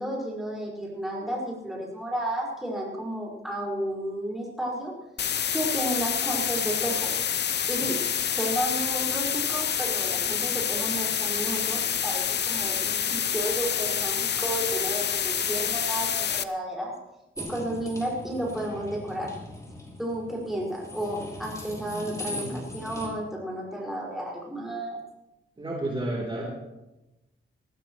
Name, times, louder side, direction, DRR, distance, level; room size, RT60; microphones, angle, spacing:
voice 1, 0.0-5.0 5.5-7.1 7.7-17.0 17.5-19.3 20.0-25.0, right 1 dB, ahead, -4 dB, 5.3 m, -32 dB
sound 1, 5.2-16.4, left 8 dB, 60° left, 0.7 m, -27 dB
sound 2, 17.4-23.1, left 1 dB, 15° left, 3.0 m, -40 dB
voice 2, 25.6-26.4, right 1 dB, 25° right, -4 dB, 3.4 m, -31 dB
21.5 x 15.0 x 3.2 m, 0.95 s
wide cardioid pair, 125°, 20 cm